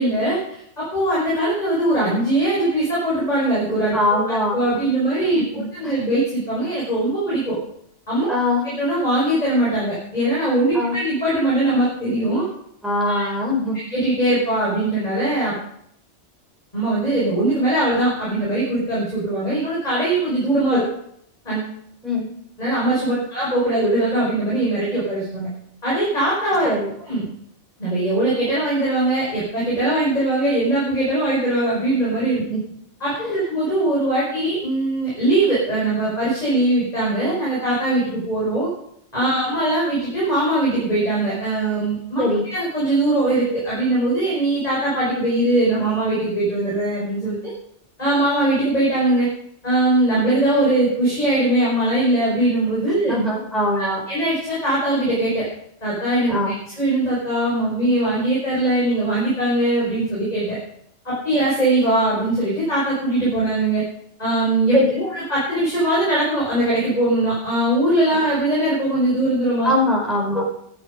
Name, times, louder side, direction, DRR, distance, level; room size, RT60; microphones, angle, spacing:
voice 1, 0.0-4.2 4.5-7.6 8.1-8.3 8.6-12.5 13.1-13.3 13.9-15.6 16.7-20.8 21.4-21.7 22.6-25.5 25.8-26.7 27.0-27.3 27.8-32.4 33.0-38.7 39.1-42.2 42.5-47.5 48.0-49.3 49.6-53.1 53.8-55.5 55.8-56.3 56.8-60.6 61.0-63.8 64.2-64.8 65.1-69.7, right 1 dB, 35° left, -7 dB, 6.0 m, -21 dB
voice 2, 3.9-4.6 5.3-6.0 8.3-8.6 10.7-11.0 12.8-13.8 20.7-20.8 22.0-22.3 26.6-26.9 32.5-32.6 39.3-39.4 42.2-42.4 53.1-54.0 56.3-56.5 64.7-65.1 69.6-70.4, left 1 dB, ahead, -3 dB, 5.3 m, -22 dB
14.5 x 12.5 x 5.4 m, 0.71 s
omnidirectional pair, 1.2 m